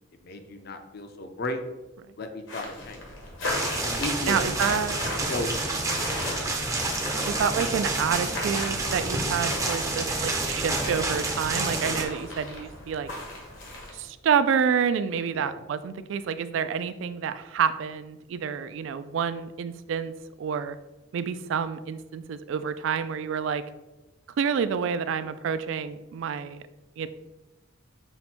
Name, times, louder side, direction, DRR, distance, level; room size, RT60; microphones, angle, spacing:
voice 1, 0.2-1.6 2.2-3.1 3.8-4.4 4.7-4.8 5.2-5.9 15.3-15.6, left 2 dB, 50° left, 7 dB, 0.5 m, -35 dB
sound 1, 2.5-14.1, left 2 dB, 80° left, 1.2 m, -37 dB
sound 2, 3.4-12.0, right 2 dB, 15° right, 0.5 m, -29 dB
voice 2, 4.3-5.1 7.3-13.1 13.9-20.1 20.4-20.8 21.1-23.6 24.4-26.6 27.0-27.1, right 7 dB, 70° right, 12 dB, 0.3 m, -28 dB
5.7 x 2.2 x 4.2 m, 1.0 s
head